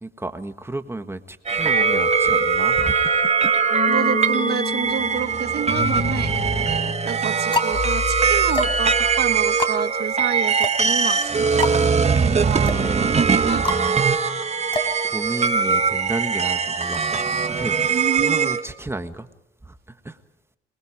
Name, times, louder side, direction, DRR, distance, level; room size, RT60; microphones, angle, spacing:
voice 1, 0.0-3.7 12.2-13.1 13.6-13.8 14.7-17.2 17.5-19.3 19.6-20.2, right 2 dB, 10° right, 8 dB, 1.5 m, -33 dB
sound 1, 1.5-18.6, right 5 dB, 35° right, 1.6 m, -21 dB
sound 2, 1.7-9.6, left 6 dB, 40° left, 0.7 m, -31 dB
voice 2, 3.9-6.4 7.0-11.5 12.2-12.9 13.4-13.7 17.9-18.6, right 8 dB, 55° right, 13 dB, 1.1 m, -29 dB
sound 3, 5.6-6.3 7.0-15.7, left 2 dB, 25° left, 3.8 m, -30 dB
28.0 x 19.5 x 4.9 m, 0.86 s
cardioid pair, 90°, 20 cm